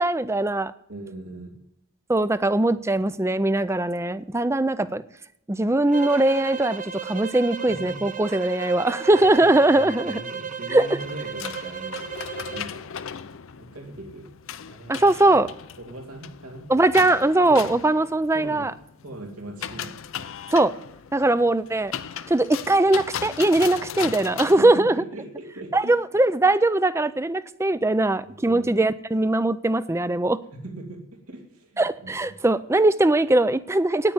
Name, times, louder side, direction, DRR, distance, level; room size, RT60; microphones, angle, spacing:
voice 1, 0.0-0.7 2.1-5.0 5.5-10.2 10.7-10.9 14.9-15.5 16.7-18.7 20.5-20.7 21.1-21.9 22.3-25.0 25.7-30.4 31.8-34.1, right 2 dB, 10° right, 15 dB, 0.4 m, -21 dB
voice 2, 0.9-1.5 4.8-4.9 7.7-8.0 9.3-12.1 12.5-12.9 13.6-14.3 14.7-15.1 15.8-16.7 17.4-17.7 18.3-18.8 19.0-20.0 24.1-26.0 28.2-28.8 30.5-32.4, right 1 dB, 85° right, 1 dB, 2.9 m, -40 dB
sound 1, 5.9-12.7, right 7 dB, 35° right, 0.8 m, -34 dB
sound 2, 11.0-24.6, left 8 dB, 65° left, 0.6 m, -37 dB
9.8 x 9.5 x 9.4 m, 0.78 s
head